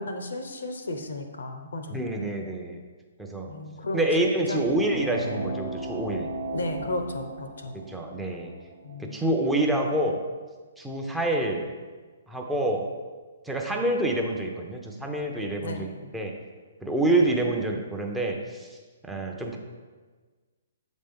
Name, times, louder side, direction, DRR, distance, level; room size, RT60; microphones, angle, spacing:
voice 1, 0.0-2.3 3.5-4.0 4.5-4.8 5.0-5.1 6.5-7.8 8.8-9.2 15.6-16.1, left 2 dB, 75° left, 6 dB, 0.7 m, -34 dB
voice 2, 1.9-2.8 3.2-3.5 3.9-6.3 7.7-8.5 9.0-10.2 10.8-11.7 12.3-12.9 13.4-16.3 16.8-18.7 19.0-19.6, right 1 dB, 5° right, 1 dB, 0.7 m, -27 dB
sound 1, 4.6-9.7, right 1 dB, 70° right, 1.0 m, -36 dB
7.2 x 4.2 x 3.6 m, 1.4 s
figure-of-eight pair, 130°, 0 cm